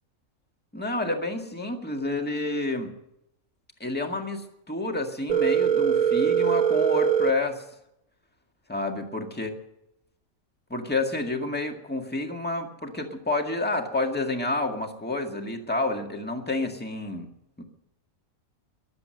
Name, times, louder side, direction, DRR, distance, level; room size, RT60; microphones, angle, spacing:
voice 1, 0.7-2.9 3.8-7.6 8.7-9.5 10.7-17.3 17.6-17.7, left 2 dB, 5° left, 3 dB, 1.8 m, -29 dB
Telephone, 5.3-7.3, right 8 dB, 80° right, 1.5 m, -22 dB
23.5 x 7.9 x 7.7 m, 0.83 s
omnidirectional pair, 1.4 m